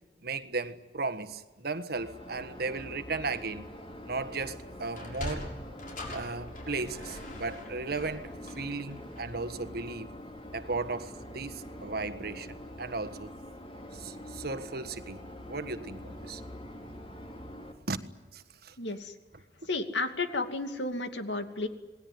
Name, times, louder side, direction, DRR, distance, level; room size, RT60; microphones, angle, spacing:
voice 1, 0.2-3.7 4.1-5.5 6.1-10.1 10.5-13.3 13.9-15.2 15.5-16.4 17.9-18.0 18.3-18.7, right 3 dB, 60° right, 1.5 m, -36 dB
sound 1, 1.9-17.7, left 1 dB, 30° left, 3.3 m, -45 dB
Sliding door, 4.9-9.5, left 1 dB, 50° left, 6.5 m, -42 dB
voice 2, 18.8-19.1 19.7-21.7, left 3 dB, 80° left, 2.6 m, -32 dB
28.5 x 20.0 x 9.5 m
head